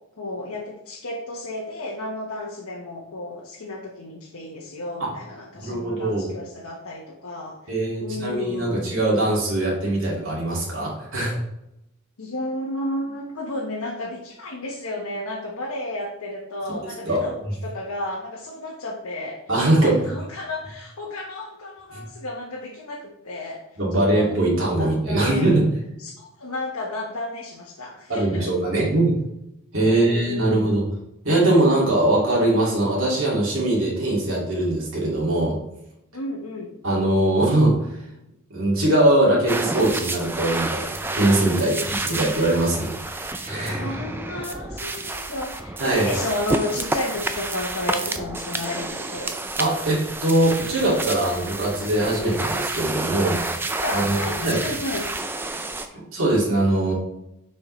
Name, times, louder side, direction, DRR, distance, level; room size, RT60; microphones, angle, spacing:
voice 1, 0.2-9.0 12.2-19.4 19.8-23.6 23.9-24.3 24.8-25.5 26.0-28.5 29.8-30.7 36.1-36.7 41.6-41.9 43.8-49.4 53.7-55.1, left 1 dB, 85° left, -2 dB, 1.1 m, -32 dB
voice 2, 5.5-6.2 7.7-11.4 17.0-17.2 19.5-20.0 21.9-22.0 23.8-25.7 28.1-29.2 29.7-30.8 31.2-35.6 36.8-37.8 38.5-40.9 41.1-43.8 45.8-46.1 49.6-53.4 53.9-54.6 55.9-56.9, right 1 dB, 60° right, -5 dB, 2.3 m, -21 dB
sound 1, 39.5-55.9, right 2 dB, 10° right, 0.3 m, -30 dB
6.4 x 5.5 x 3.1 m, 0.87 s
head